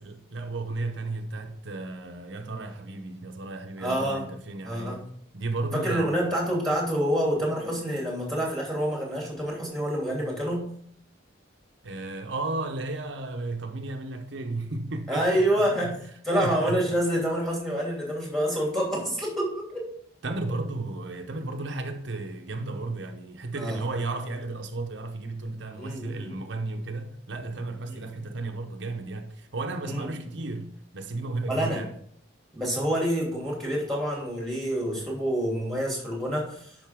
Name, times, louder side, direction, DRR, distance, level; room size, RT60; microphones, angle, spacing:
voice 1, 0.0-5.0 5.3-6.2 11.8-15.9 16.4-16.8 20.2-31.9, right 2 dB, 70° right, 0.8 m, -34 dB
voice 2, 3.8-4.2 4.6-5.0 5.7-10.6 15.1-19.9 23.6-23.8 25.7-26.4 27.9-28.0 29.8-30.1 31.5-31.8 32.5-36.7, equal, ahead, 2.7 m, -27 dB
10.5 x 5.3 x 3.6 m
head